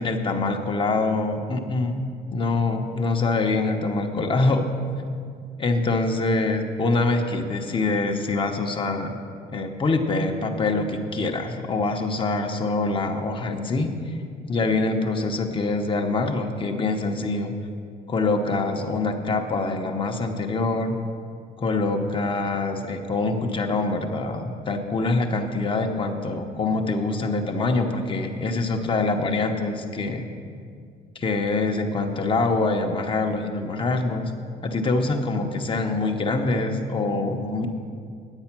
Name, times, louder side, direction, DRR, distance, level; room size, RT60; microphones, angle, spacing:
voice 1, 0.0-4.7 5.6-9.2 9.5-14.2 14.5-17.5 18.1-20.9 21.6-30.3 31.1-34.3 34.6-37.7, left 3 dB, 30° left, 3 dB, 0.9 m, -25 dB
9.8 x 7.8 x 6.0 m, 2.2 s
cardioid pair, 110°, 17 cm